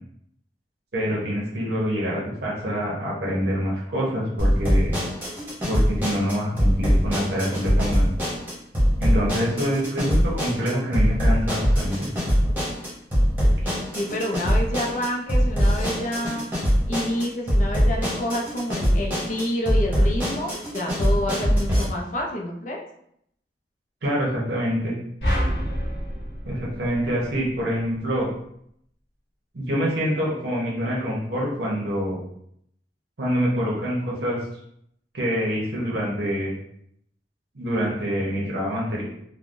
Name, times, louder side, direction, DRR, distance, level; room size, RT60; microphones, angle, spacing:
voice 1, 0.9-4.9 5.7-8.1 9.0-12.1 24.0-24.9 26.4-28.3 29.5-32.2 33.2-34.4 35.1-36.6 37.5-39.0, equal, 70° right, -5 dB, 0.8 m, -26 dB
sound 1, 4.4-21.8, equal, 10° right, 1.0 m, -22 dB
voice 2, 14.0-16.5 16.9-22.8, left 1 dB, 45° left, -1 dB, 0.6 m, -28 dB
sound 2, 25.2-27.6, equal, 70° left, 1.3 m, -27 dB
3.4 x 2.2 x 2.5 m, 0.71 s
head